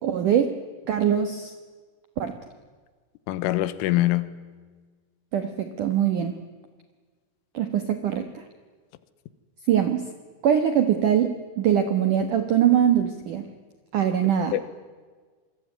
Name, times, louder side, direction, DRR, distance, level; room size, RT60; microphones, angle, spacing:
voice 1, 0.0-0.5 0.9-1.5 2.2-2.3 5.3-6.4 7.5-8.4 9.7-10.0 10.4-13.5 13.9-14.6, right 9 dB, 75° right, 1.9 m, -22 dB
voice 2, 3.3-4.3 14.5-14.6, left 16 dB, 85° left, 3.6 m, -23 dB
27.0 x 23.0 x 9.4 m
omnidirectional pair, 5.7 m